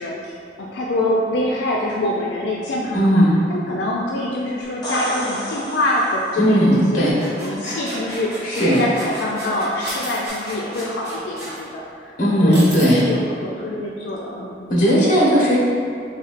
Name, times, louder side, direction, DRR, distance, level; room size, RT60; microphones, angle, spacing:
voice 1, 0.0-3.2 3.5-7.1 7.4-12.1 12.4-14.6, left 1 dB, 80° left, -3 dB, 0.4 m, -25 dB
voice 2, 2.9-3.3 6.4-7.1 8.4-8.8 12.2-13.0 14.7-15.6, equal, 45° left, -6 dB, 0.9 m, -16 dB
sound 1, 4.6-6.6 10.3-10.4, equal, 25° left, 0.9 m, -31 dB
sound 2, 6.7-11.6, right 1 dB, 15° right, 1.1 m, -34 dB
sound 3, 9.9-10.4 11.4-11.6 12.5-13.0, right 2 dB, 85° right, 1.2 m, -33 dB
4.1 x 3.1 x 2.5 m, 2.5 s
head